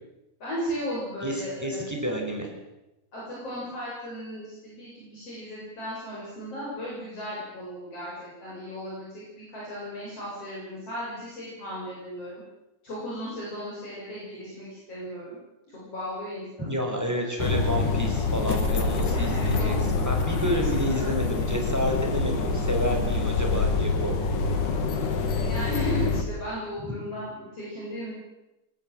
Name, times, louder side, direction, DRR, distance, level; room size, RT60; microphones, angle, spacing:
voice 1, 0.4-1.9 3.1-12.4 12.8-15.4 15.7-16.8 19.1-19.7 20.4-20.5 20.8-21.5 22.4-22.5 25.3-28.1, equal, 50° left, -6 dB, 8.6 m, -36 dB
voice 2, 1.2-2.5 16.6-24.2 26.8-27.0, equal, 5° right, 2 dB, 5.2 m, -30 dB
sound 1, 17.4-26.2, left 4 dB, 80° left, 3.8 m, -26 dB
23.0 x 19.5 x 8.0 m, 0.96 s
omnidirectional pair, 3.5 m